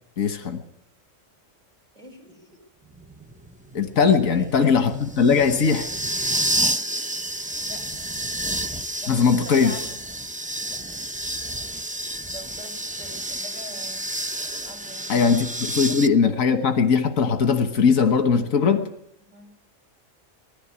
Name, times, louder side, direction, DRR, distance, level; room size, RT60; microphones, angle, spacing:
voice 1, 0.2-0.6 3.7-5.9 9.1-9.7 15.1-18.8, left 6 dB, 85° left, 8 dB, 1.6 m, -20 dB
voice 2, 1.9-2.6 4.3-4.8 6.6-6.8 7.6-8.2 8.4-8.7 9.0-10.0 10.7-10.8 12.2-14.1 14.6-15.3 15.9-16.0 18.5-18.8 19.3-19.5, equal, 30° right, 1 dB, 6.9 m, -44 dB
sound 1, 2.9-16.1, right 1 dB, 10° right, 0.4 m, -30 dB
20.0 x 14.5 x 9.8 m, 0.77 s
omnidirectional pair, 1.4 m